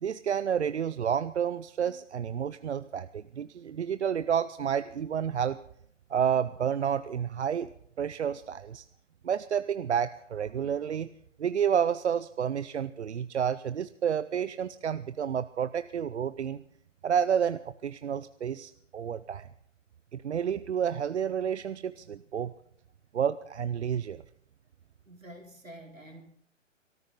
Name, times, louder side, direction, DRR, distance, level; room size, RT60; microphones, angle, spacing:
voice 1, 0.0-5.6 6.1-7.7 8.0-8.8 9.2-11.1 11.4-16.6 17.0-19.5 20.1-22.5 23.1-24.2, right 8 dB, 60° right, 13 dB, 0.6 m, -30 dB
voice 2, 25.1-26.2, right 1 dB, 90° right, 1 dB, 3.9 m, -48 dB
22.5 x 13.5 x 3.8 m, 0.65 s
figure-of-eight pair, 135°, 38 cm